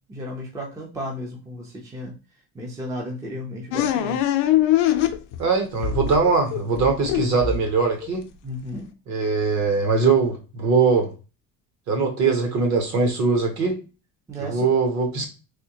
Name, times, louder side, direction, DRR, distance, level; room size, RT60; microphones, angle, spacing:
voice 1, 0.1-2.1 2.5-4.2 8.4-8.9 14.3-14.7, equal, 10° right, -1 dB, 0.4 m, -33 dB
sound 1, 3.7-5.5 5.8-8.1, left 11 dB, 90° left, 0.6 m, -23 dB
voice 2, 5.4-8.2 9.1-11.1 11.9-13.8 14.4-15.3, right 4 dB, 45° right, 4 dB, 1.0 m, -21 dB
3.5 x 2.7 x 2.9 m, 0.31 s
cardioid pair, 165°, 39 cm